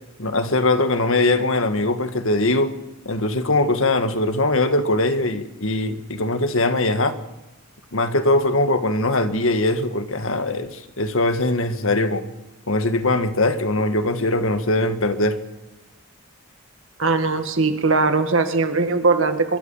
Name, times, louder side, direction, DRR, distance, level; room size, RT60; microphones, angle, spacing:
voice 1, 0.2-2.7 3.1-7.2 7.9-12.3 12.7-15.4, left 2 dB, 65° left, 1.9 m, -21 dB
voice 2, 17.0-19.6, right 3 dB, 60° right, 2.1 m, -20 dB
24.5 x 22.5 x 5.8 m
head